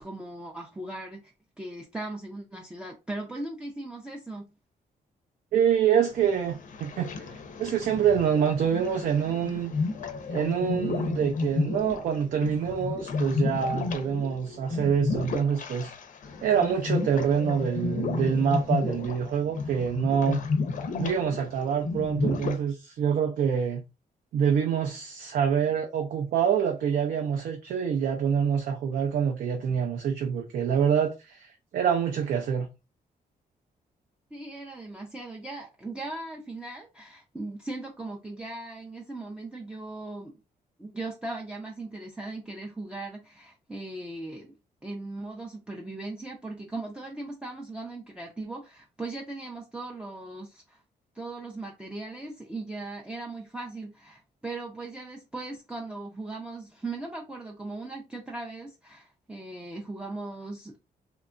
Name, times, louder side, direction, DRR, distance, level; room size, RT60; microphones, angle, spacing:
voice 1, 0.0-4.5 34.3-40.4 40.8-44.5 44.8-50.8 51.1-60.8, right 2 dB, 5° right, 0.3 m, -38 dB
voice 2, 5.5-7.1 7.6-9.7 10.3-15.9 16.4-20.4 21.0-23.8 24.3-32.7, right 7 dB, 70° right, 0.4 m, -26 dB
sound 1, 6.1-22.6, left 4 dB, 55° left, 0.5 m, -32 dB
2.8 x 2.2 x 2.4 m
wide cardioid pair, 140°, 16 cm